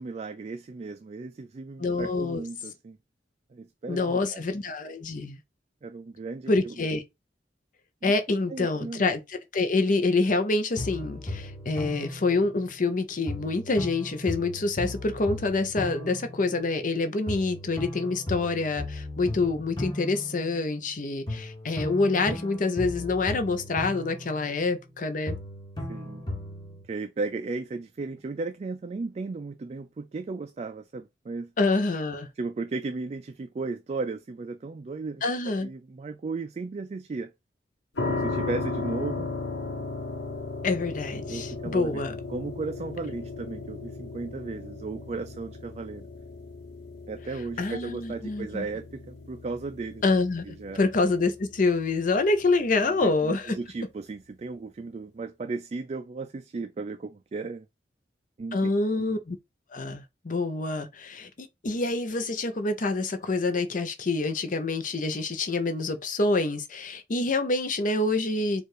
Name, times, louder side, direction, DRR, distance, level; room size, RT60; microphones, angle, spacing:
voice 1, 0.0-3.0 3.5-4.4 5.8-6.8 8.0-8.1 8.5-9.0 25.9-26.2 26.9-31.5 32.4-37.3 38.0-39.3 41.3-46.1 47.1-50.0 50.5-50.8 52.9-57.7 58.4-59.2, right 3 dB, 40° right, 0.3 m, -35 dB
voice 2, 1.8-2.4 3.9-5.4 6.5-7.0 8.0-25.4 31.6-32.3 35.2-35.7 40.6-42.1 47.6-48.6 50.0-53.6 58.5-59.4 59.7-68.6, left 3 dB, 50° left, 0.7 m, -27 dB
sound 1, 10.8-12.9 13.3-17.0 17.3-20.9 21.3-25.0 25.3-26.9, left 1 dB, 25° left, 1.3 m, -37 dB
sound 2, 38.0-52.8, left 3 dB, 80° left, 1.1 m, -36 dB
4.5 x 2.5 x 4.8 m
head